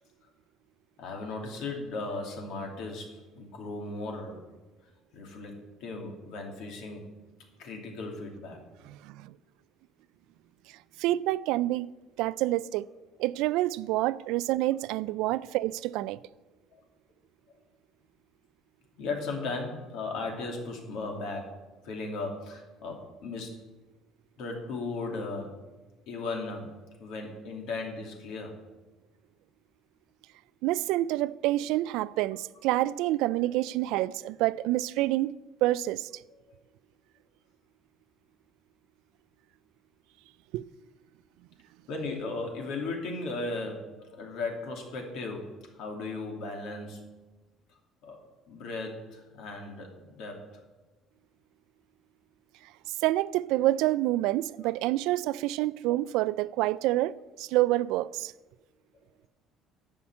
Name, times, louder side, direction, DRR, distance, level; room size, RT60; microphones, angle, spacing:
voice 1, 1.0-4.5 5.1-7.1 7.6-8.6 16.7-16.8 19.0-23.6 24.4-25.6 26.1-28.6 41.9-47.1 48.0-48.2 48.5-50.5, left 3 dB, 70° left, 2.5 m, -37 dB
voice 2, 8.9-9.3 11.0-11.9 12.2-12.8 13.2-16.2 30.6-35.3 35.6-36.1 40.5-40.6 52.9-58.3, right 16 dB, 85° right, 0.3 m, -27 dB
11.0 x 5.8 x 8.6 m
cardioid pair, 150°, 0 cm